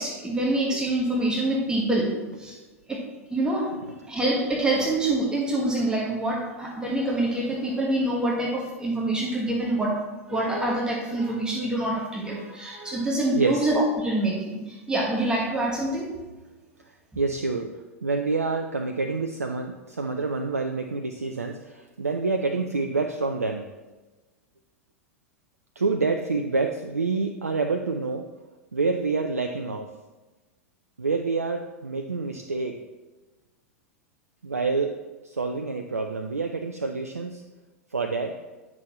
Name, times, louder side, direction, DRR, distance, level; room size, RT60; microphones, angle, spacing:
voice 1, 0.0-2.6 2.9-3.0 3.3-3.7 4.1-10.0 10.3-16.1, right 1 dB, 10° right, -2 dB, 1.3 m, -26 dB
voice 2, 13.3-13.7 16.9-17.7 18.0-23.6 25.8-28.3 28.7-29.9 31.0-32.8 34.4-34.9 35.2-37.4 37.9-38.4, right 4 dB, 85° right, 5 dB, 0.4 m, -27 dB
9.2 x 6.0 x 3.0 m, 1.2 s
figure-of-eight pair, 90°, 8 cm